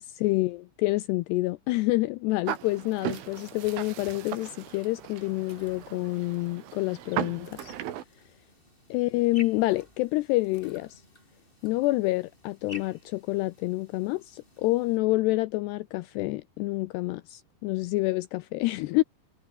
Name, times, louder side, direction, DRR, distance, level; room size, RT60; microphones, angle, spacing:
voice 1, 0.0-7.7 8.9-11.0 11.6-19.0, left 20 dB, 90° left, 2.3 m, -28 dB
sound 1, 2.5-8.0, right 12 dB, 85° right, 4.6 m, -37 dB
sound 2, 4.4-15.0, left 1 dB, 10° left, 7.3 m, -53 dB
omnidirectional pair, 5.5 m